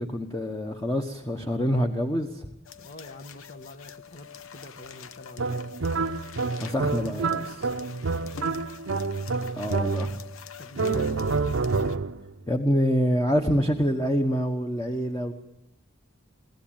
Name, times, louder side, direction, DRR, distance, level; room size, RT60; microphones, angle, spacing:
voice 1, 0.0-2.5 6.5-7.7 9.6-10.2 12.5-15.3, equal, 15° left, 4 dB, 1.2 m, -26 dB
sound 1, 2.7-12.0, left 7 dB, 80° left, 1.0 m, -45 dB
voice 2, 2.8-5.7 8.3-8.7 10.6-11.3, left 2 dB, 45° left, 6 dB, 1.2 m, -43 dB
sound 2, 5.4-10.3 10.8-12.3, right 4 dB, 65° right, 0.7 m, -28 dB
22.5 x 16.5 x 8.9 m, 0.90 s
head